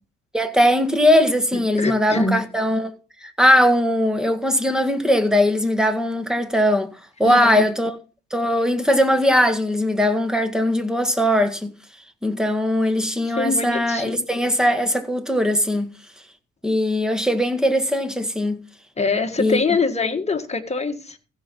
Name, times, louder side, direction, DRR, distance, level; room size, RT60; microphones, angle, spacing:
voice 1, 0.3-2.9 3.2-8.0 8.3-11.7 12.2-15.9 16.6-18.6 19.4-19.6, left 1 dB, ahead, 1.7 m, -20 dB
voice 2, 1.8-2.4 7.2-7.7 13.4-14.3 19.0-21.2, left 3 dB, 20° left, 1.8 m, -24 dB
15.0 x 5.9 x 5.4 m
cardioid pair, 90°, 30 cm